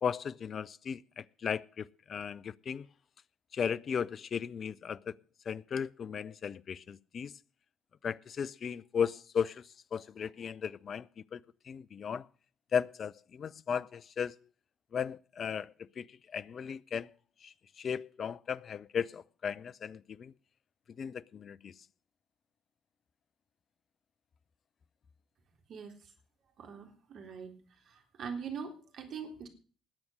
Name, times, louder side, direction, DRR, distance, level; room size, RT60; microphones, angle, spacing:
voice 1, 0.0-2.9 3.5-5.2 5.5-7.3 8.0-12.3 12.7-14.3 14.9-17.1 17.4-20.3 21.0-21.7, left 7 dB, 50° left, 0.6 m, -36 dB
voice 2, 26.6-27.5 27.9-29.5, right 6 dB, 60° right, 3.8 m, -42 dB
19.5 x 8.6 x 6.5 m
hypercardioid pair, 45°, 0 cm